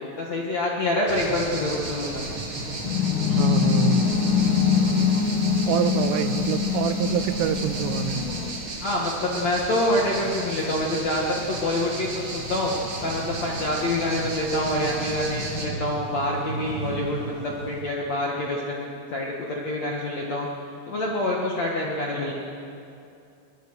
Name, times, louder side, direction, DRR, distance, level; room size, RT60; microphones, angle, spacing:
voice 1, 0.0-2.3 8.8-12.7 13.0-20.5 20.9-22.3, left 1 dB, 60° left, -2 dB, 1.8 m, -26 dB
sound 1, 1.1-15.7, right 2 dB, 35° right, 2.7 m, -34 dB
sound 2, 2.9-8.5, left 6 dB, 90° left, 3.9 m, -23 dB
voice 2, 3.3-4.1 5.7-8.3, right 11 dB, 85° right, 10 dB, 3.3 m, -26 dB
sound 3, 9.9-17.8, right 3 dB, 60° right, 6.6 m, -37 dB
22.5 x 21.0 x 6.5 m, 2.6 s
omnidirectional pair, 5.8 m